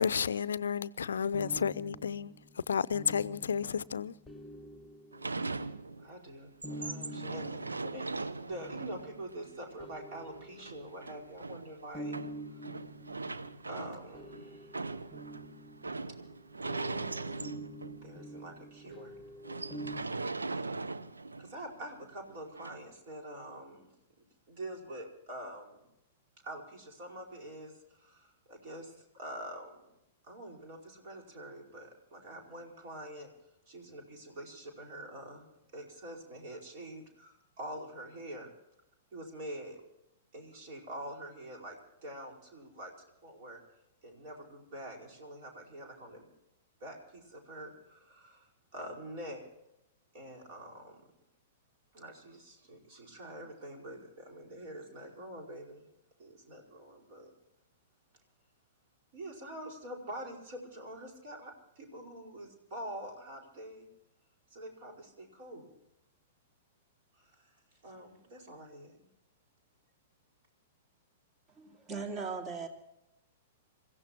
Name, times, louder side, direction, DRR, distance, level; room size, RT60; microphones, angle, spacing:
voice 1, 0.0-2.3 2.7-4.1, left 7 dB, 70° left, 0.5 m, -31 dB
sound 1, 1.3-5.9 6.6-9.3 9.8-11.3 11.9-20.0, right 1 dB, 5° left, 1.6 m, -47 dB
sound 2, 5.1-6.2 6.5-18.2 18.6-18.7 18.9-19.1 19.4-21.6 22.6-22.8, right 3 dB, 80° right, 0.7 m, -40 dB
voice 2, 6.0-12.2 13.6-14.7 18.0-19.2 20.5-20.8 21.4-23.9 24.2-25.9 26.4-29.7 30.2-33.3 33.7-38.5 39.1-39.8 40.3-42.9 43.2-43.6 44.0-46.3 46.8-49.4 50.1-51.0 51.9-55.9 56.2-57.3 59.1-63.9 64.5-65.7 67.1-67.6 67.8-68.9, right 1 dB, 50° right, 5.0 m, -46 dB
voice 3, 71.5-72.7, right 4 dB, 30° right, 2.4 m, -38 dB
28.0 x 16.0 x 3.0 m
figure-of-eight pair, 105°, 0 cm